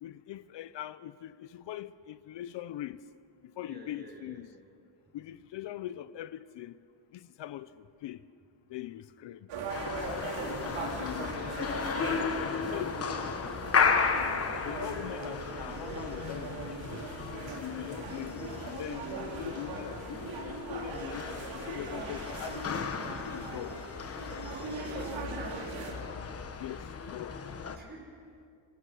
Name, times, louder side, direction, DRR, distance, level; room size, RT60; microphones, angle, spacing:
voice 1, 0.0-3.0 3.6-4.5 5.1-6.8 7.1-8.2 8.7-9.5 10.0-11.6 12.4-13.6 14.6-17.0 17.6-21.3 21.5-22.9 23.2-23.8 26.6-27.4, left 12 dB, 70° left, 0.7 m, -42 dB
voice 2, 3.6-4.4 10.1-10.5 24.9-25.7 27.7-28.1, right 1 dB, 20° right, 5.1 m, -49 dB
sound 1, 9.5-25.9, right 3 dB, 85° right, 4.1 m, -40 dB
sound 2, 9.7-27.8, left 5 dB, 30° left, 1.2 m, -35 dB
26.0 x 25.5 x 6.4 m
cardioid pair, 170°, 45 cm